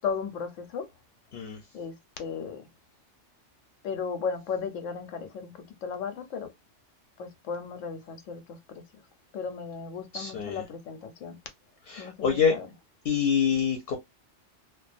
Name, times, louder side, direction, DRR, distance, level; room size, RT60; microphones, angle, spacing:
voice 1, 0.0-0.9 1.7-2.6 3.8-6.5 7.2-8.8 9.3-11.4 12.0-12.7, left 6 dB, 90° left, 1.0 m, -35 dB
voice 2, 10.1-10.6 11.9-12.5 13.0-14.0, left 7 dB, 60° left, 0.8 m, -26 dB
2.4 x 2.2 x 2.5 m
omnidirectional pair, 1.3 m